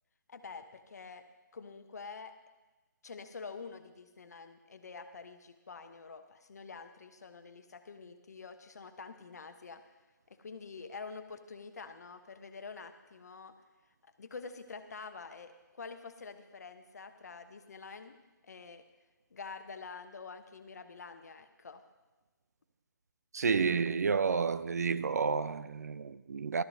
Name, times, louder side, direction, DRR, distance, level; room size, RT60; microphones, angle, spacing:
voice 1, 0.3-1.2 1.5-2.3 3.0-9.8 10.3-13.5 14.0-18.2 18.4-18.8 19.3-21.8, left 4 dB, 55° left, 0.9 m, -47 dB
voice 2, 23.3-26.6, right 5 dB, 50° right, 0.4 m, -30 dB
15.5 x 13.0 x 2.7 m
figure-of-eight pair, 140°, 11 cm